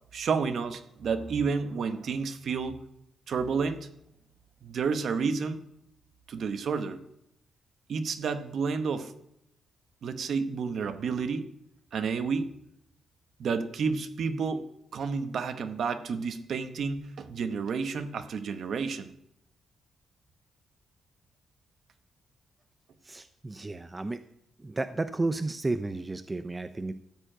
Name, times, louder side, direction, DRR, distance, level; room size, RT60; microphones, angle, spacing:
voice 1, 0.1-2.8 3.3-3.9 4.6-5.6 6.3-7.0 7.9-9.1 10.0-11.5 11.9-12.5 13.4-14.6 14.9-19.2, right 5 dB, 50° right, 10 dB, 0.9 m, -30 dB
voice 2, 23.0-24.2 24.6-27.0, right 2 dB, 15° right, 11 dB, 0.3 m, -32 dB
13.5 x 4.6 x 8.7 m, 0.78 s
wide cardioid pair, 175°, 0 cm